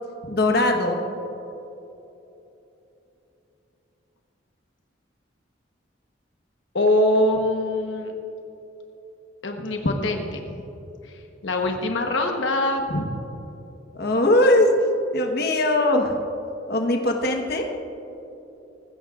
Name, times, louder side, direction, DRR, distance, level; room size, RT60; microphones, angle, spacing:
voice 1, 0.3-1.0 13.9-14.7 15.1-16.1 16.7-17.7, left 1 dB, 55° left, 3 dB, 1.2 m, -20 dB
voice 2, 6.7-8.1 9.4-10.6 11.4-13.1, left 1 dB, 75° left, 3 dB, 1.1 m, -23 dB
19.5 x 16.0 x 2.5 m, 3.0 s
head